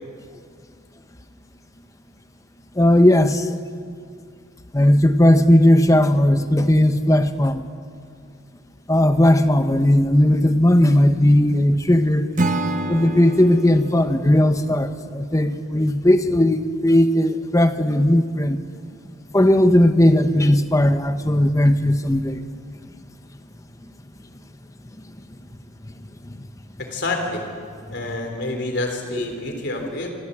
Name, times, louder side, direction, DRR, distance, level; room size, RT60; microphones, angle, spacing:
voice 1, 2.8-3.5 4.7-7.7 8.9-12.3 12.9-18.6 19.3-22.4 26.2-26.5, left 1 dB, 15° left, 9 dB, 0.8 m, -17 dB
Acoustic guitar / Strum, 12.3-15.5, right 2 dB, 40° right, 1.0 m, -28 dB
voice 2, 26.8-27.5 27.9-30.1, left 2 dB, 55° left, 3 dB, 3.7 m, -27 dB
26.0 x 15.5 x 8.6 m, 2.2 s
head